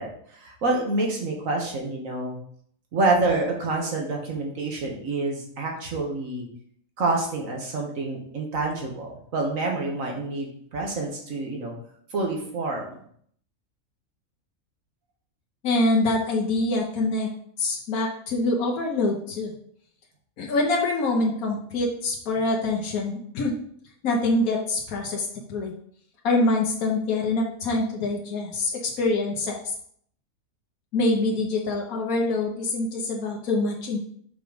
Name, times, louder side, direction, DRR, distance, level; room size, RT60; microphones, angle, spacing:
voice 1, 0.0-2.4 2.9-6.5 7.0-11.7 12.1-13.0, right 2 dB, 70° right, 0 dB, 1.6 m, -27 dB
voice 2, 15.6-17.3 17.6-19.5 20.4-23.5 24.0-25.7 26.2-29.7 30.9-34.0, left 2 dB, 80° left, 0 dB, 1.4 m, -25 dB
5.9 x 3.8 x 5.0 m, 0.63 s
omnidirectional pair, 1.5 m